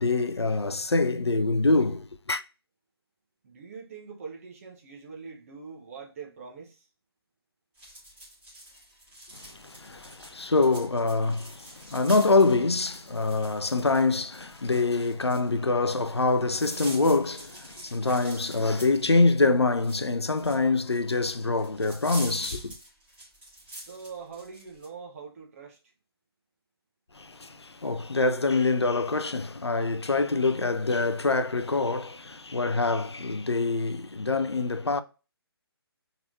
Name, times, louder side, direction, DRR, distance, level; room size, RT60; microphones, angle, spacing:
voice 1, 0.0-2.4 9.3-22.7 27.1-35.0, left 3 dB, 80° left, 0.5 m, -25 dB
voice 2, 3.4-6.9 23.8-25.8, right 5 dB, 35° right, 1.2 m, -43 dB
sound 1, 7.8-24.9, right 1 dB, 10° right, 2.7 m, -45 dB
4.6 x 3.9 x 2.7 m
figure-of-eight pair, 140°, 14 cm